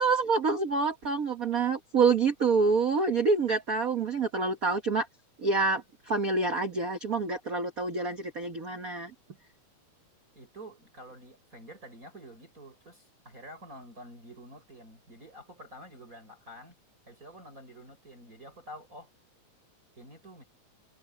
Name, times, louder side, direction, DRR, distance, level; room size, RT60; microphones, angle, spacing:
voice 1, 0.0-5.1 5.4-9.1, right 4 dB, 50° right, 1.1 m, -27 dB
voice 2, 10.4-16.8 17.1-19.1 20.0-20.4, equal, 25° right, 6.8 m, -48 dB
omnidirectional pair, 3.5 m